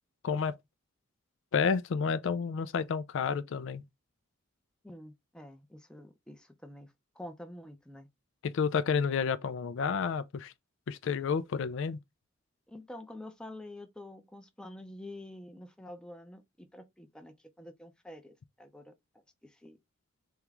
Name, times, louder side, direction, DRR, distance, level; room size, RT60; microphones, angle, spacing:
voice 1, 0.2-0.6 1.5-3.8 8.4-10.5 10.9-12.0, left 6 dB, 65° left, 0.4 m, -30 dB
voice 2, 4.8-8.1 12.7-18.9 19.4-19.8, left 1 dB, 5° left, 0.6 m, -48 dB
3.6 x 3.0 x 3.4 m
head